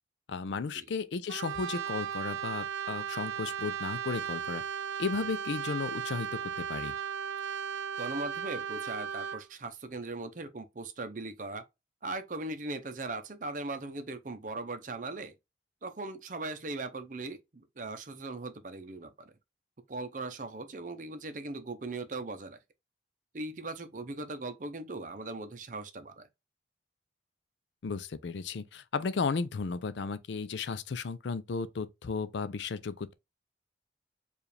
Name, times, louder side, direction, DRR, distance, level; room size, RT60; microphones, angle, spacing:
voice 1, 0.3-4.6 5.0-6.9 27.8-33.1, left 4 dB, 80° left, 0.5 m, -34 dB
Brass instrument, 1.3-9.5, right 9 dB, 85° right, 0.4 m, -36 dB
voice 2, 8.0-11.6 12.0-15.3 15.8-19.3 19.9-22.6 23.3-26.3, right 2 dB, 45° right, 0.6 m, -39 dB
4.8 x 2.5 x 3.3 m
head